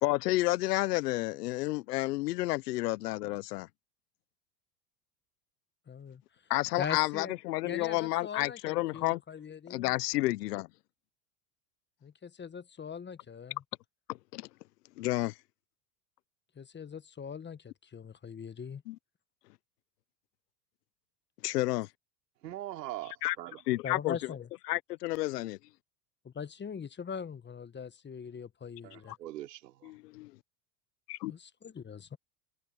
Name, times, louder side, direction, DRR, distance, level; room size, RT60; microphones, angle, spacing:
voice 1, 0.0-3.7 6.5-9.2 9.7-10.7 14.1-14.5 15.0-15.3 18.9-19.0 21.4-21.9 23.2-23.4 23.7-24.3 24.7-25.6 29.1-29.2 29.8-30.3 31.1-31.3, left 18 dB, 75° left, 1.1 m, -31 dB
voice 2, 5.9-6.2 6.8-7.3 7.6-9.9 12.0-13.6 16.6-18.8 23.8-24.5 26.2-29.1 31.3-32.2, left 7 dB, 20° left, 1.4 m, -41 dB
voice 3, 22.4-23.6 28.8-29.9, right 14 dB, 80° right, 3.4 m, -42 dB
hypercardioid pair, 85°, 48 cm